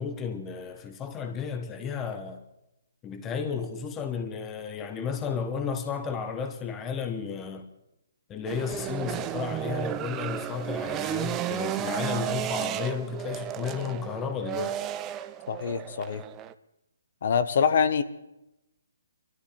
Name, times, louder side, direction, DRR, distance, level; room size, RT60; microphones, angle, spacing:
voice 1, 0.0-2.4 3.0-7.7 8.3-14.9, left 6 dB, 15° left, 0.9 m, -33 dB
sound 1, 8.5-16.5, right 12 dB, 15° right, 0.5 m, -33 dB
voice 2, 15.5-16.2 17.2-18.0, left 6 dB, 50° left, 1.1 m, -25 dB
24.5 x 13.0 x 3.3 m
hypercardioid pair, 160°, 0 cm